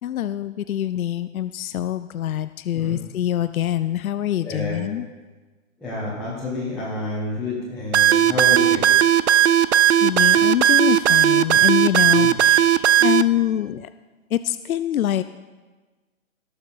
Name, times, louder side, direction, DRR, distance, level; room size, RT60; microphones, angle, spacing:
voice 1, 0.0-5.1 10.0-13.9 14.3-15.2, left 11 dB, 80° left, 12 dB, 0.6 m, -25 dB
voice 2, 4.4-4.8 5.8-8.9 12.1-12.3, left 2 dB, ahead, -13 dB, 1.0 m, -29 dB
sound 1, 7.9-13.2, right 11 dB, 55° right, 0.5 m, -16 dB
18.0 x 6.9 x 4.1 m, 1.3 s
hypercardioid pair, 170°, 41 cm